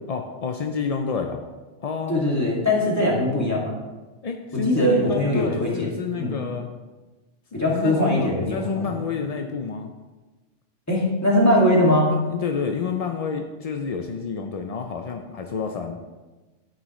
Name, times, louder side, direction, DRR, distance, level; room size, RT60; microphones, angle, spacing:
voice 1, 0.1-1.4 1.8-2.1 4.2-6.7 7.6-9.9 12.1-16.0, left 5 dB, 55° left, 4 dB, 0.4 m, -29 dB
voice 2, 2.1-3.7 4.5-5.9 6.2-6.4 7.5-8.9 10.9-12.1, left 1 dB, 15° left, -5 dB, 2.1 m, -21 dB
9.7 x 8.9 x 3.1 m, 1.2 s
omnidirectional pair, 1.3 m